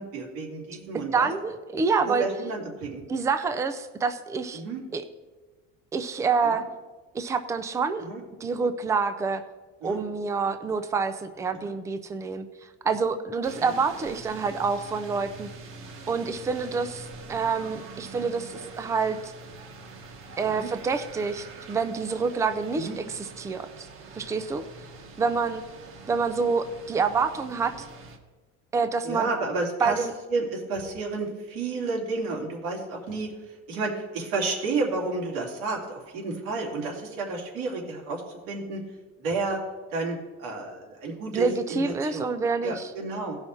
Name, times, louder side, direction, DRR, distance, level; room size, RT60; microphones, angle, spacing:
voice 1, 0.0-1.3 2.0-3.0 4.5-4.8 6.4-6.6 8.0-8.2 9.8-10.0 11.6-11.7 13.6-13.7 20.5-20.7 22.8-23.0 29.0-38.8 39.2-39.6 39.9-42.3 42.6-43.4, right 3 dB, 90° right, -2 dB, 2.8 m, -31 dB
voice 2, 1.1-2.3 3.1-4.6 4.9-5.0 5.9-6.6 7.1-8.0 8.4-9.4 9.8-12.5 12.8-15.5 16.1-19.3 20.4-23.9 24.2-24.6 25.2-25.6 26.1-27.9 28.7-29.3 29.8-30.1 41.3-42.9, right 5 dB, 10° right, 10 dB, 0.3 m, -27 dB
sound 1, 13.4-28.2, right 3 dB, 45° right, 1.1 m, -44 dB
17.0 x 5.6 x 4.5 m, 1.3 s
cardioid pair, 160°, 31 cm